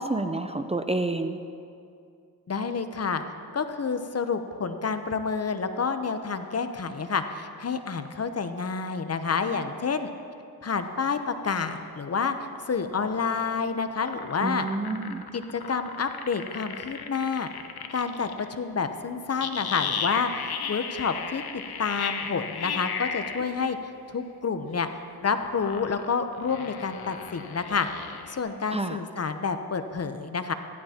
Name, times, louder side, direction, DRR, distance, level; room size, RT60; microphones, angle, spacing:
voice 1, 0.0-1.4 14.4-15.2 28.7-29.0, right 2 dB, 15° right, 7 dB, 0.6 m, -29 dB
voice 2, 2.5-3.2 3.5-10.1 10.6-12.4 12.7-14.6 15.3-17.5 17.9-23.8 24.1-24.9 25.2-27.9 28.3-30.5, left 5 dB, 40° left, 9 dB, 0.8 m, -29 dB
sound 1, 12.3-18.5 19.4-23.4 25.3-28.4, left 7 dB, 75° left, 0.9 m, -35 dB
15.5 x 11.5 x 2.9 m, 2.4 s
cardioid pair, 55°, 38 cm